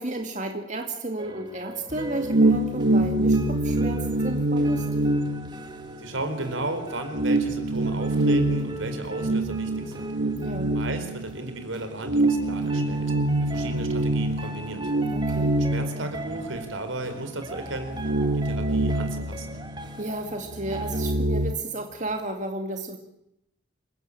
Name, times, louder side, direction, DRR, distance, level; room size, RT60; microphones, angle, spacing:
voice 1, 0.0-4.9 10.4-10.7 15.1-15.5 20.0-23.0, right 2 dB, 35° right, 4 dB, 2.3 m, -33 dB
sound 1, 1.2-21.1, right 2 dB, 20° right, 1.9 m, -41 dB
sound 2, 1.9-6.2 6.6-6.7 7.1-11.5 12.0-16.7 17.1-17.2 17.6-20.0 20.3-21.5, right 1 dB, 60° right, 1.6 m, -25 dB
voice 2, 6.0-10.1 10.7-13.1 13.4-14.9 15.6-19.6, right 2 dB, 80° right, 8 dB, 4.5 m, -35 dB
27.5 x 17.0 x 8.8 m, 0.81 s
head